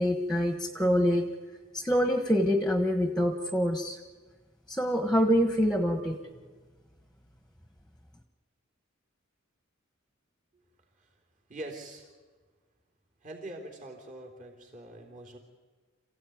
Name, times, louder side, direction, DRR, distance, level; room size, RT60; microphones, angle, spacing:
voice 1, 0.0-1.3 1.7-4.0 4.7-6.2, equal, 5° left, 6 dB, 1.3 m, -26 dB
voice 2, 11.5-12.1 13.2-15.4, right 1 dB, 40° right, 2 dB, 3.7 m, -43 dB
27.5 x 16.0 x 9.5 m, 1.4 s
head